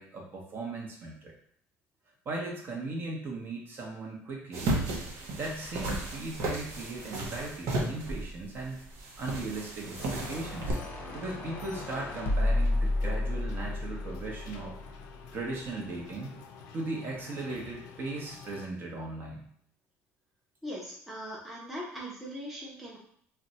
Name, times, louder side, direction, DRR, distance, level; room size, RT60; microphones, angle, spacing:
voice 1, 0.0-1.3 2.2-4.8 5.4-8.8 9.2-10.8 11.1-14.8 15.3-16.3 16.7-19.4, right 2 dB, 40° right, -1 dB, 0.8 m, -38 dB
sound 1, 4.5-10.7, right 2 dB, 70° right, 0.8 m, -34 dB
sound 2, 9.8-18.7, left 5 dB, 85° left, 0.4 m, -49 dB
sound 3, 9.9-15.2, left 2 dB, 35° left, 0.7 m, -32 dB
voice 2, 20.6-23.0, equal, ahead, -5 dB, 0.7 m, -40 dB
2.5 x 2.2 x 4.0 m, 0.65 s
cardioid pair, 140°, 5 cm